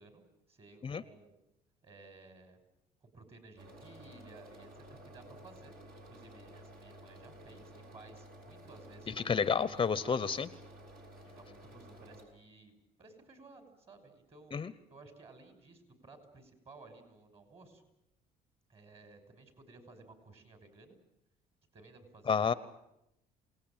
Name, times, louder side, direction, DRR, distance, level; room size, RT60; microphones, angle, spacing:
voice 1, 0.0-1.3 1.8-2.6 3.0-5.7 6.1-10.3 11.3-12.7 13.0-14.5 14.9-17.8 18.7-21.0 21.7-22.4, right 3 dB, 35° right, 7 dB, 6.2 m, -56 dB
sound 1, 3.6-12.2, right 1 dB, 60° right, 7.9 m, -53 dB
voice 2, 9.2-10.5 14.5-14.7 22.3-22.5, left 6 dB, 30° left, 15 dB, 0.9 m, -30 dB
27.5 x 19.0 x 9.0 m, 0.84 s
cardioid pair, 110°, 17 cm